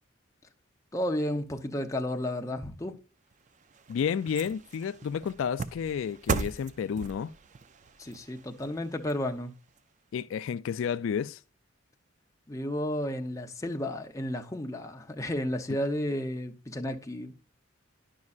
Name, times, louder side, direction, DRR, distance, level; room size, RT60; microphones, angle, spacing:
voice 1, 0.9-3.0 8.0-9.5 12.5-17.3, left 1 dB, 15° left, 0.7 m, -32 dB
sound 1, 3.3-9.8 10.2-10.3, right 4 dB, 35° right, 0.4 m, -38 dB
voice 2, 3.9-7.3 10.1-11.4 15.7-15.8, left 7 dB, 75° left, 0.3 m, -31 dB
10.5 x 5.4 x 2.4 m
head